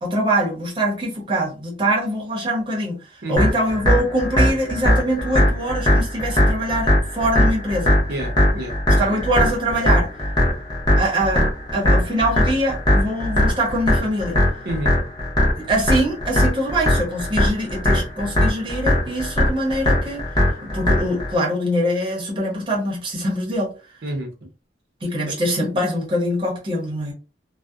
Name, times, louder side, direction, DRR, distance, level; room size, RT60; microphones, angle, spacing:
voice 1, 0.0-8.0 9.0-10.1 11.0-14.4 15.6-20.3 20.6-23.7 25.0-27.1, right 1 dB, 25° right, 0.7 m, -23 dB
sound 1, 3.4-21.3, left 1 dB, 20° left, 0.7 m, -19 dB
voice 2, 8.1-9.2 14.6-14.9 24.0-24.5 25.3-25.4, right 1 dB, 55° right, 0.6 m, -30 dB
2.7 x 2.0 x 2.3 m
head